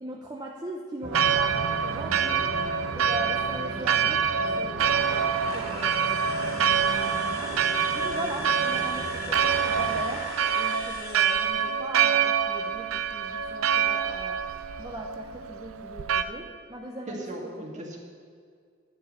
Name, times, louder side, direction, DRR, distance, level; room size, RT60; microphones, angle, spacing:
voice 1, 0.0-2.2 2.9-7.5 7.9-14.4 14.8-17.5, right 1 dB, 20° right, -1 dB, 0.7 m, -39 dB
sound 1, 1.0-10.0, right 2 dB, 55° right, 1.0 m, -37 dB
Church bell, 1.1-16.2, right 7 dB, 80° right, 0.5 m, -26 dB
sound 2, 5.4-11.7, left 4 dB, 50° left, 1.1 m, -40 dB
voice 2, 17.1-18.0, right 1 dB, 35° right, -1 dB, 1.8 m, -38 dB
11.5 x 5.1 x 8.3 m, 2.1 s
head